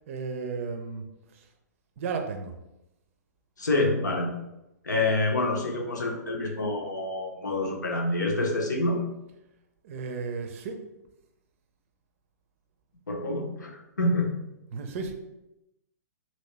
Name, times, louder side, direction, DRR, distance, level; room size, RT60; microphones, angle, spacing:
voice 1, 0.1-1.0 1.3-1.4 2.0-2.6 9.8-10.8 14.7-15.1, right 5 dB, 50° right, 5 dB, 0.5 m, -34 dB
voice 2, 3.6-4.3 4.8-9.0 13.1-14.4, left 2 dB, 85° left, 1 dB, 0.7 m, -27 dB
2.9 x 2.8 x 3.1 m, 0.92 s
figure-of-eight pair, 120°, 10 cm